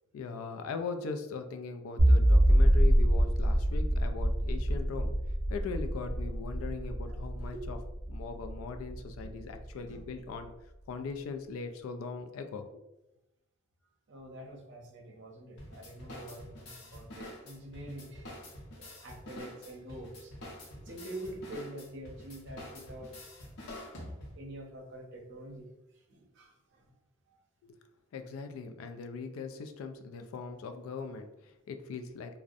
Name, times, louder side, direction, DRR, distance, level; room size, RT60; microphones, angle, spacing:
voice 1, 0.1-5.1 5.5-7.8 8.1-10.5 10.9-12.8 27.6-27.8 28.1-32.4, left 4 dB, 85° left, 9 dB, 0.3 m, -40 dB
sound 1, 2.0-9.2, right 1 dB, 20° right, 0.6 m, -25 dB
voice 2, 14.1-18.3 18.8-20.3 20.9-23.1 24.3-25.7 26.1-26.9, right 1 dB, 60° right, 0 dB, 0.6 m, -46 dB
sound 2, 15.6-24.5, left 1 dB, 60° left, 0.6 m, -47 dB
2.6 x 2.0 x 2.4 m, 0.92 s
head